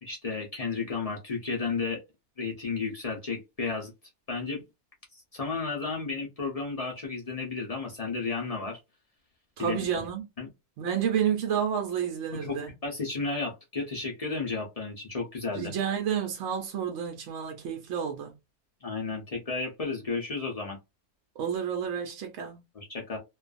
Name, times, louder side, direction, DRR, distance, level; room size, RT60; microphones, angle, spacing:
voice 1, 0.0-2.0 2.4-3.9 4.3-4.6 5.1-8.8 9.6-10.1 10.4-10.5 12.3-15.7 18.8-20.8 22.7-23.2, left 4 dB, 45° left, 0.4 m, -33 dB
voice 2, 9.6-10.2 10.8-12.7 15.5-18.3 21.4-22.6, right 8 dB, 65° right, 0.7 m, -30 dB
2.5 x 2.3 x 2.4 m
omnidirectional pair, 1.7 m